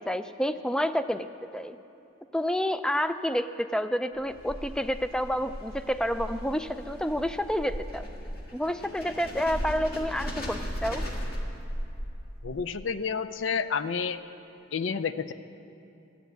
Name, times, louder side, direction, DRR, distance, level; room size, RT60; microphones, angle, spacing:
voice 1, 0.1-1.3 1.5-1.8 2.3-8.1 8.5-11.0, equal, 5° left, 11 dB, 0.3 m, -29 dB
sound 1, 4.2-12.5, equal, 50° left, 1.8 m, -37 dB
voice 2, 12.4-14.2 14.7-15.3, left 6 dB, 65° left, 13 dB, 0.5 m, -30 dB
13.0 x 8.0 x 9.0 m, 2.8 s
head